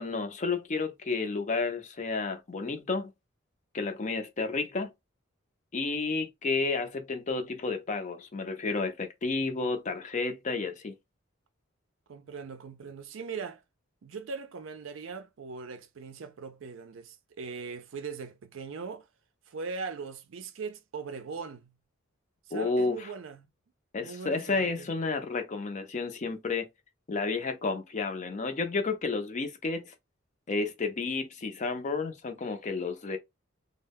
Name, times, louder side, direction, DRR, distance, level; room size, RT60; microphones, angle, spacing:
voice 1, 0.0-3.1 3.7-4.9 5.7-10.9 22.5-23.1 23.9-26.7 27.1-29.9 30.5-33.2, left 3 dB, 35° left, 0.4 m, -31 dB
voice 2, 12.1-13.6 14.0-19.1 19.5-21.7 22.5-23.5 24.0-24.9, right 5 dB, 65° right, 0.4 m, -40 dB
2.2 x 2.0 x 3.4 m
head